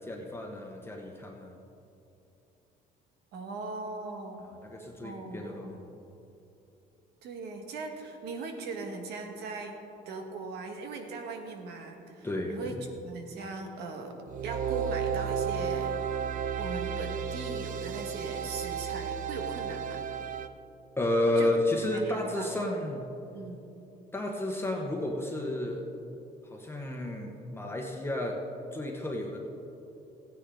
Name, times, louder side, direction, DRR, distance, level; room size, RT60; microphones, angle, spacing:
voice 1, 0.0-1.6 4.6-5.8 12.2-12.7 21.0-23.0 24.1-25.9 26.5-28.4 28.7-29.4, left 1 dB, 15° left, 0 dB, 1.1 m, -31 dB
voice 2, 3.3-4.4 5.0-5.8 7.2-9.8 10.0-12.8 13.0-14.2 14.4-15.9 16.6-20.0 21.4-22.8 23.3-23.6, right 3 dB, 80° right, 4 dB, 1.6 m, -39 dB
sound 1, 14.3-20.5, right 7 dB, 50° right, 0.6 m, -33 dB
15.0 x 10.0 x 3.8 m, 2.9 s
cardioid pair, 110°, 17 cm